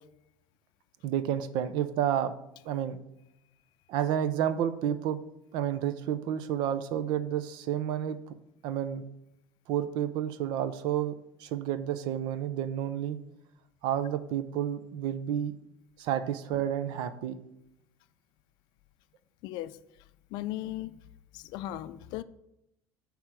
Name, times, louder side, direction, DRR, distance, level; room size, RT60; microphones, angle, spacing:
voice 1, 1.0-2.3 2.6-3.0 3.9-5.2 5.5-8.2 8.6-9.0 9.7-11.1 11.4-13.2 13.8-15.5 16.0-17.4, right 10 dB, 70° right, 12 dB, 0.7 m, -30 dB
voice 2, 19.4-19.8 20.3-21.0 21.3-22.2, left 14 dB, 65° left, 14 dB, 0.4 m, -37 dB
8.9 x 3.6 x 5.9 m, 0.82 s
cardioid pair, 125°, 8 cm